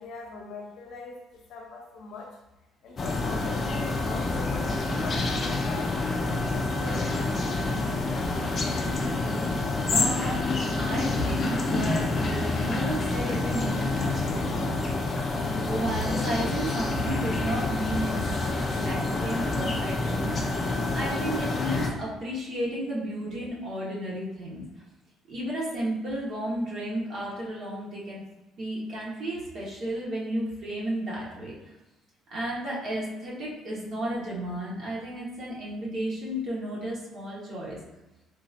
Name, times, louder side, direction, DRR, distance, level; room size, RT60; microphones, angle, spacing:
voice 1, 0.0-2.4 2.8-7.4, left 3 dB, 65° left, 0 dB, 0.7 m, -42 dB
sound 1, 3.0-21.9, left 2 dB, 35° left, 0.5 m, -28 dB
voice 2, 9.9-14.9 15.3-18.3 18.8-20.6 20.9-24.6 25.3-28.2 28.6-31.5 32.3-37.8, right 1 dB, 50° right, -5 dB, 1.2 m, -33 dB
3.8 x 2.7 x 2.5 m, 1.0 s
cardioid pair, 125°, 0 cm